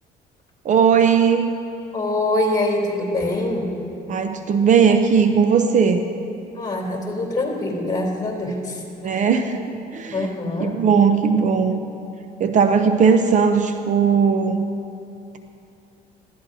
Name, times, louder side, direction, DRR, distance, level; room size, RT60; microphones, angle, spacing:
voice 1, 0.6-1.5 4.1-6.0 9.0-9.6 9.9-10.3 10.6-11.8 12.4-14.6, right 6 dB, 45° right, 8 dB, 0.6 m, -18 dB
voice 2, 1.9-3.7 6.5-9.1 10.1-10.7, left 2 dB, 25° left, -2 dB, 3.3 m, -24 dB
20.0 x 14.5 x 2.7 m, 2.6 s
cardioid pair, 110°, 17 cm